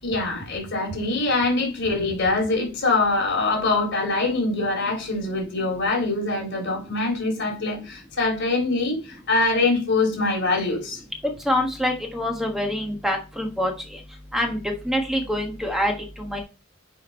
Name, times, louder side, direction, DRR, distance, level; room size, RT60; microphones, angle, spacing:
voice 1, 0.0-11.0, left 3 dB, 60° left, 3.8 m, -24 dB
voice 2, 11.4-14.0 14.3-16.4, left 1 dB, ahead, 1.3 m, -26 dB
9.6 x 5.1 x 4.2 m
head